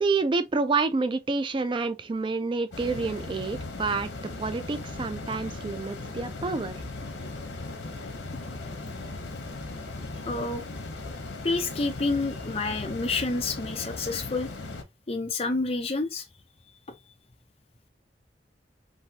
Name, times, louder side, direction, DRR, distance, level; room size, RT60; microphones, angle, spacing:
voice 1, 0.0-4.1 4.4-6.7, right 4 dB, 30° right, 0.3 m, -28 dB
sound 1, 2.7-14.8, left 2 dB, 90° left, 0.8 m, -38 dB
voice 2, 10.3-10.6 11.4-14.5 15.1-16.2, left 3 dB, 35° left, 0.6 m, -28 dB
3.1 x 2.6 x 2.7 m
head